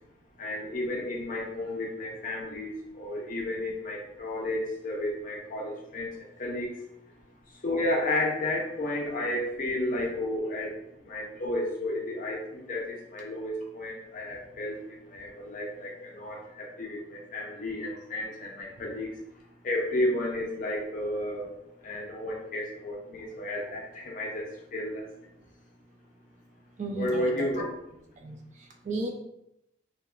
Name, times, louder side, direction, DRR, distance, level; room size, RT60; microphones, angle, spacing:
voice 1, 0.4-6.1 6.4-6.7 7.6-10.7 11.1-19.1 19.6-21.5 21.8-25.0 27.0-27.6, left 1 dB, 45° left, -1 dB, 0.5 m, -32 dB
voice 2, 26.8-27.5 28.2-29.1, right 2 dB, 40° right, 3 dB, 0.3 m, -34 dB
2.9 x 2.1 x 2.3 m, 0.82 s
head